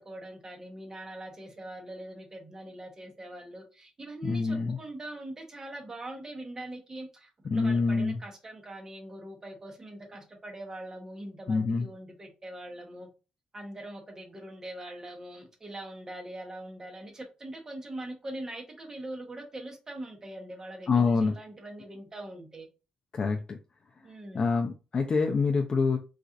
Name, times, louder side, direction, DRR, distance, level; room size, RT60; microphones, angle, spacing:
voice 1, 0.0-13.1 13.5-22.7 24.0-24.5, right 1 dB, 25° right, 1.0 m, -42 dB
voice 2, 4.2-4.8 7.5-8.2 11.5-11.9 20.9-21.3 23.1-23.6 24.3-26.0, left 4 dB, 40° left, 0.4 m, -26 dB
4.0 x 2.4 x 2.5 m
cardioid pair, 115°, 2 cm